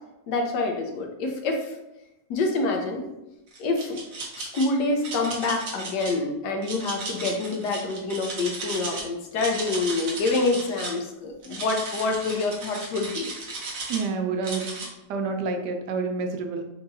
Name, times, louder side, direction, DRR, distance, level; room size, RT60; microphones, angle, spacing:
voice 1, 0.3-1.7 2.3-3.0 3.6-4.0 4.4-13.3, left 3 dB, 85° left, 3 dB, 1.3 m, -27 dB
sound 1, 3.5-4.6 5.0-6.1 6.6-9.0 9.3-11.0 11.4-14.1 14.4-14.9, right 3 dB, 60° right, 1.2 m, -35 dB
voice 2, 13.9-16.6, right 4 dB, 90° right, 4 dB, 1.2 m, -29 dB
4.5 x 2.8 x 2.6 m, 0.93 s
omnidirectional pair, 1.8 m